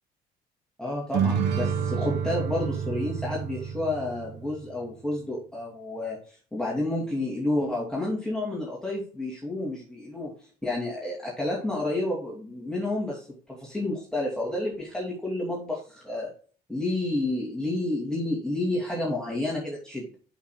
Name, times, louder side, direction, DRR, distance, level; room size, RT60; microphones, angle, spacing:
voice 1, 0.8-10.3 10.6-16.3 16.7-20.2, left 2 dB, 5° left, -4 dB, 2.7 m, -30 dB
sound 1, 1.1-4.7, right 7 dB, 80° right, 1.6 m, -29 dB
11.5 x 5.8 x 2.3 m, 0.40 s
cardioid pair, 110°, 17 cm